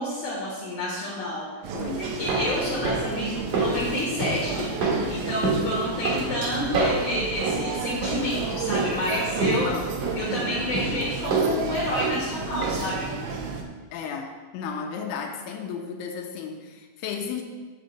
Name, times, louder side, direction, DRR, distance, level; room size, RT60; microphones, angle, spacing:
voice 1, 0.0-1.5 2.0-4.7 5.1-9.7 10.2-13.1, left 1 dB, 65° left, -5 dB, 2.0 m, -29 dB
sound 1, 1.6-13.6, right 5 dB, 80° right, 3.0 m, -32 dB
voice 2, 1.7-2.0 9.5-9.9 13.9-17.4, left 6 dB, 85° left, 2 dB, 3.2 m, -34 dB
sound 2, 2.0-13.0 13.3-13.4, right 3 dB, 60° right, 1.9 m, -29 dB
10.0 x 4.2 x 7.0 m, 1.4 s
omnidirectional pair, 5.4 m